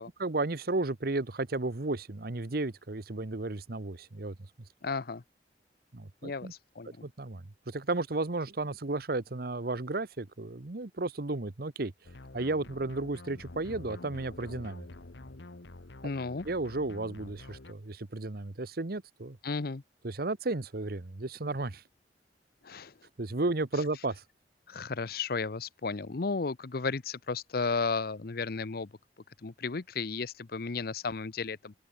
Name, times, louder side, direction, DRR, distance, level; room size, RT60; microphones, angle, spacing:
voice 1, 0.0-4.3 5.9-6.5 7.0-11.9 12.3-14.8 16.4-19.4 20.0-21.8 23.2-24.2, right 2 dB, 60° right, 1.1 m, -33 dB
voice 2, 4.8-5.2 6.2-7.0 16.0-16.5 19.4-19.8 22.6-22.9 24.7-28.9 29.4-31.8, left 4 dB, 60° left, 0.7 m, -34 dB
sound 1, 12.0-17.7, left 2 dB, 85° left, 1.3 m, -48 dB
open air
head